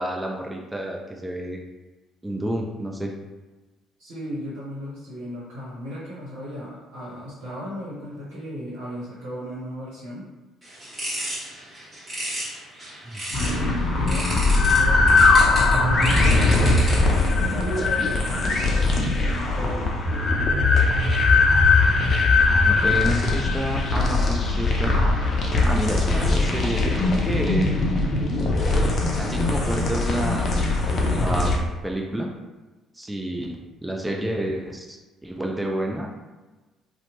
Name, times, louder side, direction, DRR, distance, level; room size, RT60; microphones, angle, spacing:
voice 1, 0.0-1.6 2.2-3.1 13.0-13.2 22.6-24.9 25.6-27.7 29.2-30.5 31.1-31.5 31.8-32.3 33.0-36.1, right 1 dB, 10° right, 0 dB, 0.5 m, -29 dB
voice 2, 4.0-10.2 13.3-15.1 15.6-18.8 19.1-20.0, equal, 70° right, -9 dB, 0.9 m, -35 dB
sound 1, 10.6-13.6 14.1-17.2, right 1 dB, 30° right, 1.4 m, -33 dB
sound 2, 13.3-31.6, left 3 dB, 45° left, 0.5 m, -20 dB
2.8 x 2.1 x 2.9 m, 1.2 s
figure-of-eight pair, 50°, 0 cm